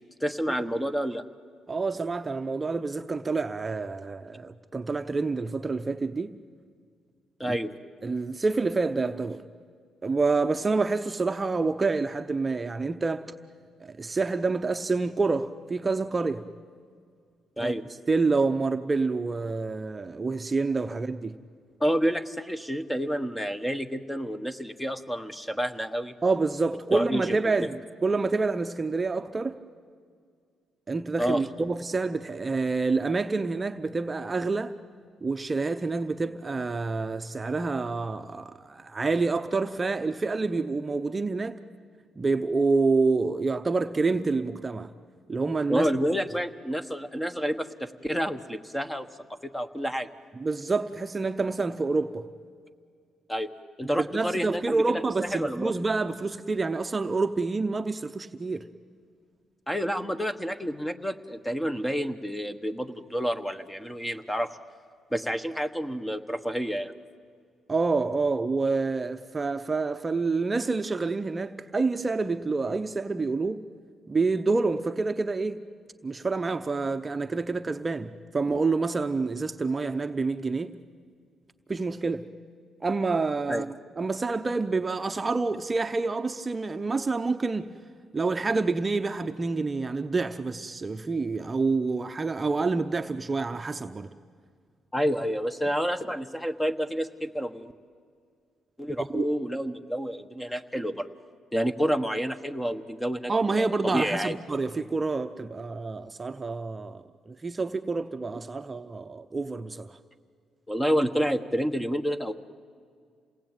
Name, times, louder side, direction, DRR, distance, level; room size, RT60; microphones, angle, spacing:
voice 1, 0.2-1.2 7.4-7.7 17.6-17.8 21.8-26.1 26.9-27.7 31.2-31.4 45.7-50.1 53.3-53.5 53.8-54.8 55.3-55.7 59.7-64.6 65.1-66.9 83.5-83.6 94.9-97.7 98.8-101.1 101.5-104.3 110.7-112.3, equal, 10° left, 1.3 m, -29 dB
voice 2, 1.7-6.4 7.4-7.6 8.0-9.4 10.0-13.3 13.8-16.4 17.6-17.7 18.1-21.3 26.2-29.6 30.9-34.7 35.2-41.6 42.2-44.9 45.3-45.9 50.4-52.2 53.8-58.6 67.7-73.6 74.1-75.6 76.0-80.8 81.7-82.2 82.8-87.7 88.1-94.1 99.1-99.3 103.3-110.0, right 3 dB, 25° right, 0.8 m, -28 dB
28.0 x 19.0 x 9.1 m
cardioid pair, 90°, 0 cm